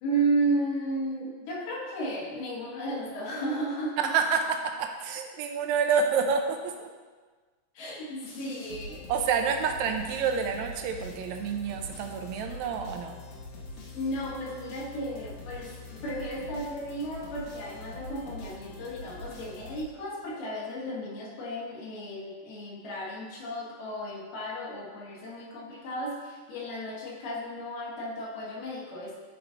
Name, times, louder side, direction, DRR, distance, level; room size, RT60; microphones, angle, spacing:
voice 1, 0.0-4.1 7.7-9.1 13.9-29.2, right 1 dB, 75° left, -5 dB, 2.9 m, -33 dB
voice 2, 4.0-6.9 9.1-13.1, right 6 dB, 80° right, 4 dB, 1.7 m, -28 dB
sound 1, 8.2-20.3, left 2 dB, 60° left, 1.8 m, -44 dB
11.0 x 4.7 x 3.7 m, 1.4 s
omnidirectional pair, 3.9 m